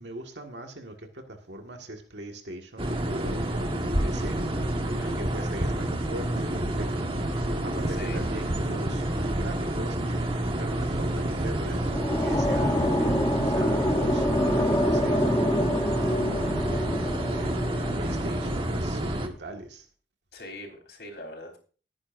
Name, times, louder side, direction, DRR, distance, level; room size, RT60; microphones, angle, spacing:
voice 1, 0.0-15.8 16.7-19.9, right 1 dB, 80° right, 3 dB, 1.7 m, -41 dB
sound 1, 2.8-19.3, right 1 dB, 30° right, 1.5 m, -29 dB
voice 2, 4.8-5.2 7.9-8.2 20.3-21.6, left 1 dB, 65° left, 2 dB, 4.2 m, -42 dB
sound 2, 11.5-18.7, equal, 20° left, 1.0 m, -27 dB
20.5 x 9.7 x 2.6 m, 0.38 s
head